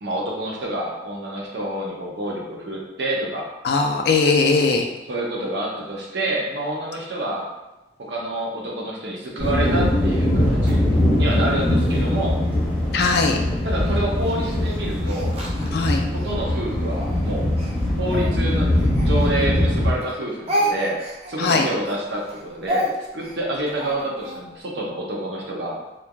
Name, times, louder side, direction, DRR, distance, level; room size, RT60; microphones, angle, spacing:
voice 1, 0.0-3.5 5.1-7.5 8.0-10.8 11.1-12.4 13.6-15.3 16.1-17.5 18.0-21.0 21.3-22.9 23.1-25.8, right 1 dB, 75° right, -2 dB, 0.6 m, -28 dB
voice 2, 3.6-4.9 12.9-13.4 15.7-16.0 21.4-21.7, left 4 dB, 65° left, 3 dB, 0.4 m, -19 dB
sound 1, 9.4-19.9, left 1 dB, 10° right, 1.0 m, -21 dB
Speech, 13.2-16.3 16.9-19.7 20.0-24.4, equal, 35° right, 0.4 m, -30 dB
3.1 x 2.4 x 2.2 m, 1.0 s
head